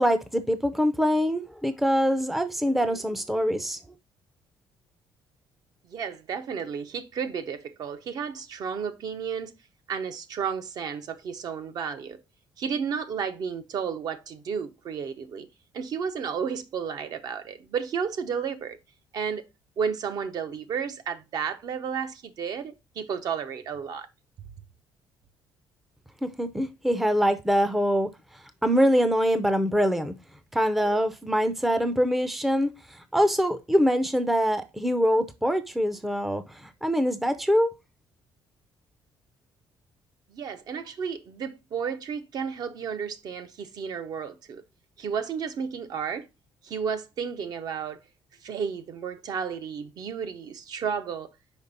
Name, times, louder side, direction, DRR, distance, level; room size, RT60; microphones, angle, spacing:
voice 1, 0.0-3.8 26.2-28.1 28.6-30.1 30.5-32.7 33.1-37.7, equal, ahead, 0.5 m, -24 dB
voice 2, 5.9-9.5 9.9-12.2 12.6-15.5 15.7-18.8 19.1-19.4 19.8-24.1 40.3-44.6 45.0-46.3 46.6-48.0 48.4-51.3, right 6 dB, 50° right, 0.8 m, -32 dB
5.2 x 5.0 x 4.0 m
cardioid pair, 145°, 8 cm